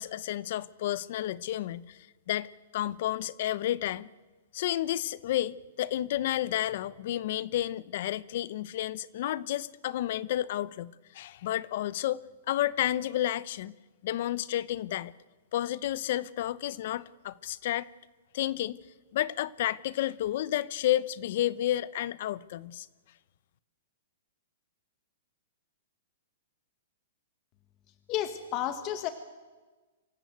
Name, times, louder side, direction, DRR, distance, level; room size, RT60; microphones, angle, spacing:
voice 1, 0.0-2.0 2.3-4.1 4.5-13.7 14.0-15.1 15.5-17.9 18.3-18.8 19.1-22.9, left 13 dB, 55° left, 0.7 m, -31 dB
voice 2, 28.1-29.1, left 11 dB, 35° left, 1.5 m, -31 dB
25.0 x 15.0 x 9.3 m
hypercardioid pair, 140°, 0 cm